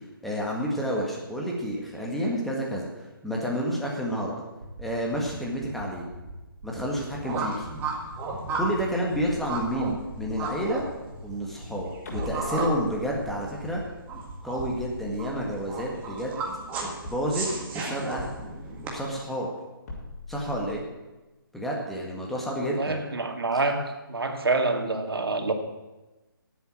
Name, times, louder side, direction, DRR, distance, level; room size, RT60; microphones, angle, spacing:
voice 1, 0.2-4.3 4.8-6.1 6.6-7.7 8.5-10.8 11.2-13.8 14.4-16.4 17.0-17.5 17.7-18.4 18.9-19.5 20.3-20.8 21.5-23.0, equal, ahead, -3 dB, 1.8 m, -30 dB
sound 1, 4.6-4.8 5.1-5.3 5.6-5.8 6.1-6.3 6.6-6.8 7.1-7.3 7.6-7.8 8.1-8.3 8.6-8.8 9.1-9.3 9.6-9.8 10.1-10.3 10.6-10.8 11.1-11.3 11.6-11.8 12.1-12.3 12.6-12.8 13.1-13.3 13.6-13.8 14.1-14.3 14.6-14.8, right 3 dB, 50° right, 3.9 m, -43 dB
sound 2, 6.8-18.9, right 3 dB, 15° right, 1.9 m, -34 dB
sound 3, 9.1-11.7 12.1-14.2 14.6-16.8 17.0-17.7 18.2-19.4 19.9-20.8, left 2 dB, 45° left, 4.7 m, -43 dB
voice 2, 22.7-25.5, right 3 dB, 80° right, 6 dB, 2.0 m, -27 dB
10.5 x 8.2 x 9.0 m, 1.1 s
hypercardioid pair, 155°, 12 cm